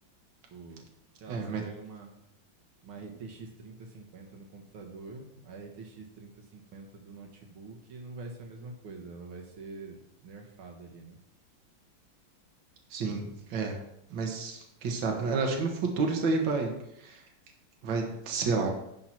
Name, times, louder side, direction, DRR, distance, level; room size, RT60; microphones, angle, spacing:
voice 1, 0.5-0.8 1.2-2.1 2.8-11.2, right 3 dB, 85° right, 2 dB, 2.1 m, -46 dB
voice 2, 1.3-1.6 12.9-13.7 14.1-16.7 17.0-17.2 17.8-18.7, right 4 dB, 70° right, 2 dB, 2.0 m, -30 dB
10.0 x 4.7 x 5.8 m, 0.80 s
omnidirectional pair, 2.2 m